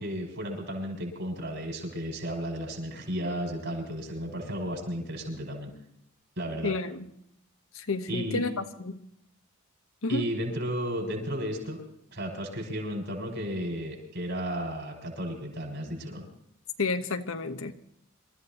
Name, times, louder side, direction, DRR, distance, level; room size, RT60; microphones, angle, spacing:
voice 1, 0.0-5.7 6.4-6.7 8.1-8.4 10.1-11.8 12.1-16.2, equal, 55° right, 6.7 m, -33 dB
voice 2, 6.6-7.1 7.7-9.0 10.0-10.3 16.8-17.8, left 3 dB, 75° left, 1.2 m, -31 dB
27.0 x 14.5 x 3.0 m
head